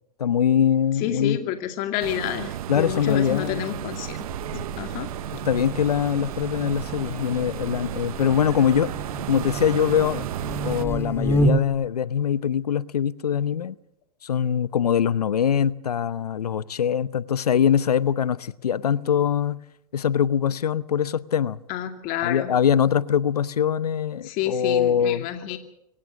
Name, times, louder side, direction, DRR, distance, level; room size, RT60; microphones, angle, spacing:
voice 1, 0.2-1.4 2.7-3.8 4.5-4.7 5.4-8.9 9.3-10.3 10.6-13.7 14.2-19.6 19.9-21.6 22.2-25.3, left 8 dB, 90° left, 0.9 m, -23 dB
voice 2, 1.0-4.2 4.8-5.1 21.7-22.5 24.2-25.6, left 11 dB, 45° left, 2.4 m, -29 dB
sound 1, 2.0-10.8, right 12 dB, 70° right, 0.8 m, -33 dB
Buzz, 4.1-11.8, right 1 dB, 10° left, 2.9 m, -30 dB
24.0 x 18.0 x 6.4 m
hypercardioid pair, 105°, 19 cm